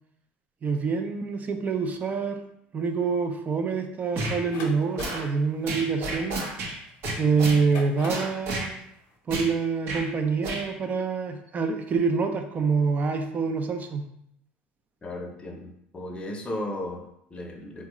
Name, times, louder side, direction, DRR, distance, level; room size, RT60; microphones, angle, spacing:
voice 1, 0.6-2.4 2.7-6.4 7.2-8.7 9.3-14.1, right 5 dB, 35° right, 5 dB, 0.5 m, -26 dB
sound 1, 4.1-4.4 5.0-5.2 5.7-6.7 7.0-7.6 8.1-8.7 9.3-9.5 9.8-10.0 10.4-10.6, right 2 dB, 60° right, 0.8 m, -31 dB
sound 2, 4.2-6.9 7.5-8.4, left 3 dB, 65° left, 0.8 m, -42 dB
voice 2, 15.0-17.9, left 1 dB, 25° left, 2 dB, 0.7 m, -35 dB
3.7 x 2.2 x 3.0 m, 0.73 s
supercardioid pair, 90°, 5 cm